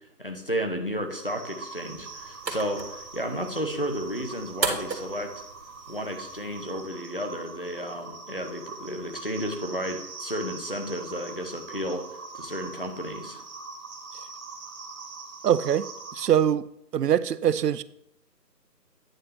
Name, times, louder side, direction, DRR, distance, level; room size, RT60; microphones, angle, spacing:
voice 1, 0.0-5.4 5.9-13.4, equal, 35° left, 0.6 m, -33 dB
sound 1, 1.1-16.3, right 4 dB, 55° right, 1.2 m, -43 dB
sound 2, 1.8-6.8, right 4 dB, 85° right, 1.7 m, -36 dB
voice 2, 15.4-15.9 16.1-16.7 16.9-17.8, right 9 dB, 70° right, 0.5 m, -23 dB
8.9 x 3.2 x 5.5 m
figure-of-eight pair, 170°, 50 cm